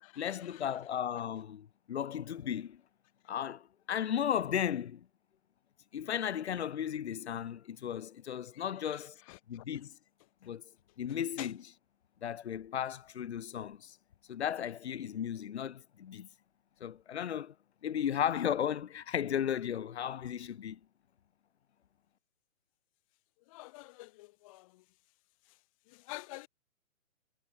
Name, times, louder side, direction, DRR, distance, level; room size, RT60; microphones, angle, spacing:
voice 1, 0.2-2.8 3.3-5.0 5.9-9.2 9.5-9.9 10.4-10.6 11.0-11.7 12.2-14.0 14.3-16.3 16.8-17.5 17.8-20.8, left 9 dB, 55° left, 2.2 m, -35 dB
voice 2, 23.5-24.6 26.1-26.5, left 21 dB, 25° left, 1.7 m, -46 dB
hypercardioid pair, 150°, 40 cm